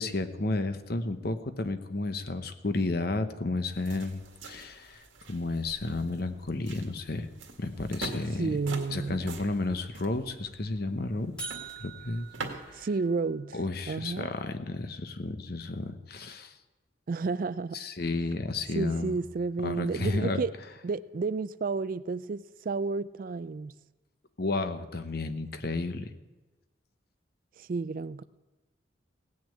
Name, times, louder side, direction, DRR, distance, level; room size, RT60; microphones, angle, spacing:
voice 1, 0.0-7.3 7.6-8.6 8.9-11.5 11.8-12.3 12.7-12.9 13.5-16.5 17.7-19.2 19.6-20.4 24.4-26.1, left 2 dB, 50° left, 9 dB, 0.9 m, -32 dB
Walking terrace, 3.6-12.8, right 3 dB, 85° right, 1.9 m, -45 dB
voice 2, 8.4-9.2 12.7-13.6 13.9-14.3 17.1-17.8 18.7-20.5 20.8-23.7 27.6-28.2, right 4 dB, 45° right, 17 dB, 0.3 m, -31 dB
sound 1, 11.4-13.5, right 5 dB, 5° left, 1.9 m, -44 dB
17.0 x 6.3 x 8.5 m, 1.2 s
head